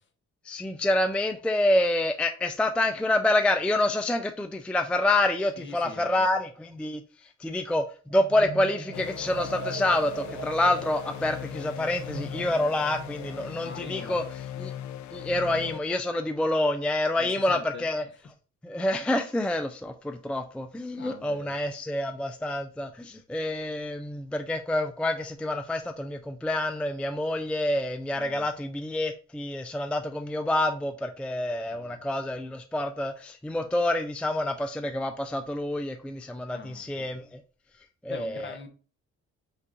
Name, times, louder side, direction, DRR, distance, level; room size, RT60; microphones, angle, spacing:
voice 1, 0.4-7.8 8.1-14.2 14.6-14.7 15.1-18.0 18.6-37.4 38.0-38.6, left 1 dB, 5° left, 0.4 m, -27 dB
voice 2, 5.6-6.3 13.6-14.2 17.2-17.9 21.0-21.6 28.1-28.5 31.7-32.0 36.5-37.3 38.1-38.7, left 4 dB, 40° left, 0.9 m, -42 dB
sound 1, 8.1-13.5, right 4 dB, 65° right, 1.2 m, -40 dB
sound 2, 8.9-15.8, left 11 dB, 70° left, 0.5 m, -39 dB
5.5 x 2.5 x 3.7 m
cardioid pair, 90°, 30 cm